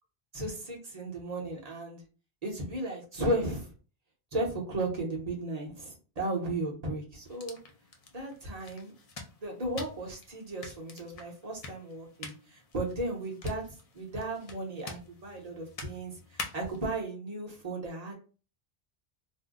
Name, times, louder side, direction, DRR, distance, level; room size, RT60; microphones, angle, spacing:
voice 1, 0.3-2.0 2.4-3.7 4.3-7.6 8.1-8.9 9.4-18.1, right 1 dB, 40° right, -1 dB, 0.9 m, -35 dB
sound 1, 7.2-16.9, left 3 dB, 45° left, 0.5 m, -47 dB
2.6 x 2.1 x 3.6 m, 0.36 s
omnidirectional pair, 1.1 m